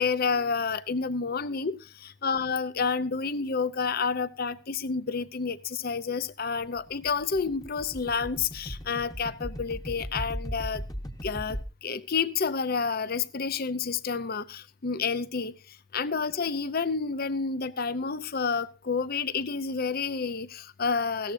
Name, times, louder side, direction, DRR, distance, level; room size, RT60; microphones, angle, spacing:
voice 1, 0.0-10.8 11.2-11.6 11.8-15.5 15.9-21.3, left 5 dB, 50° left, 0.7 m, -29 dB
sound 1, 6.6-11.6, equal, 20° left, 1.1 m, -38 dB
16.5 x 13.5 x 2.7 m
head